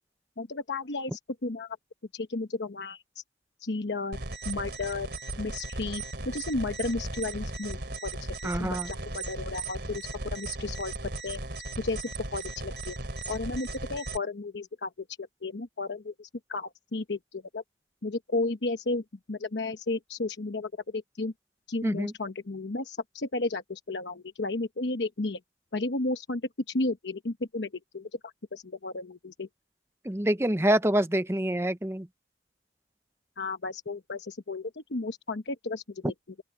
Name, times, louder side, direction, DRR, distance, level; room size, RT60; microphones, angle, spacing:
voice 1, 0.4-1.7 2.1-3.0 3.6-5.1 5.4-11.4 11.8-13.0 13.3-14.9 15.2-17.6 18.0-19.0 19.3-21.3 21.7-25.4 25.7-26.4 26.7-29.5 33.4-36.1, left 2 dB, 80° left, 1.0 m, -33 dB
sound 1, 4.1-14.2, right 2 dB, 65° right, 3.1 m, -37 dB
voice 2, 8.4-8.9 21.8-22.1 30.0-32.1, right 1 dB, 15° right, 0.7 m, -26 dB
open air
head